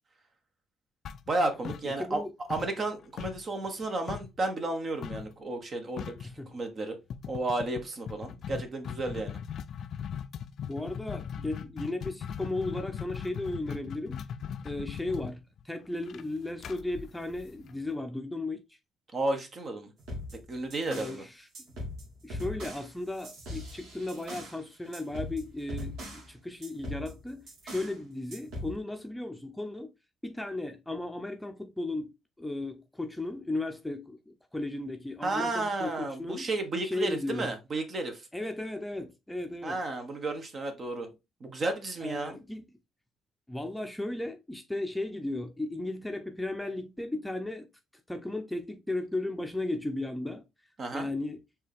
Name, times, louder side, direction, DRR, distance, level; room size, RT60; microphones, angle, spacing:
sound 1, 1.0-2.2 2.5-4.4 5.0-5.3 5.6-5.7 6.0-6.3 7.1-17.9, left 8 dB, 65° left, 0.4 m, -39 dB
voice 1, 1.3-2.2 2.5-7.0 7.3-9.4 19.1-19.9 20.5-21.2 35.2-38.2 39.6-41.1 41.4-42.4 50.8-51.1, right 2 dB, 45° right, 1.2 m, -32 dB
voice 2, 1.8-2.3 6.2-6.5 10.7-14.2 14.6-18.6 20.9-21.5 22.2-29.9 30.2-36.5 36.8-37.5 38.3-39.8 42.0-42.6 43.5-47.7 48.1-50.4 50.9-51.4, left 2 dB, 5° left, 0.6 m, -35 dB
sound 2, 20.0-21.2 21.5-24.6 24.9-26.3 26.6-28.0 28.3-28.7, left 1 dB, 75° right, 1.8 m, -40 dB
4.5 x 2.9 x 3.4 m
supercardioid pair, 70°, 0 cm